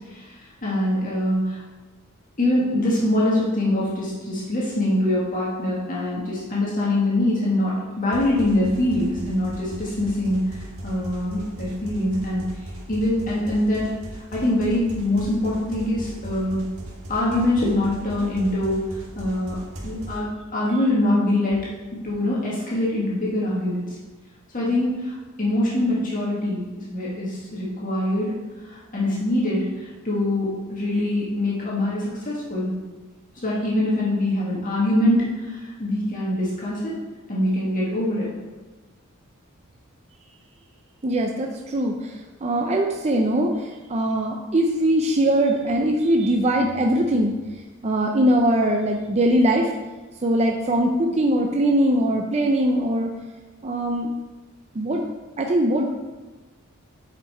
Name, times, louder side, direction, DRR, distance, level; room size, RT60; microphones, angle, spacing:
voice 1, 0.6-1.6 2.4-12.5 12.9-13.9 14.3-16.6 17.1-18.8 19.2-21.6 22.0-23.8 24.5-28.3 28.6-32.8 33.4-36.9 37.3-38.3, left 1 dB, 40° left, -6 dB, 1.7 m, -24 dB
sound 1, 8.1-20.2, right 1 dB, 80° right, 1.7 m, -38 dB
voice 2, 41.0-47.4 47.8-49.7 50.2-53.1 53.6-54.1 54.7-55.0 55.4-55.9, right 1 dB, 30° right, 1 dB, 0.6 m, -21 dB
8.3 x 5.2 x 4.3 m, 1.2 s
head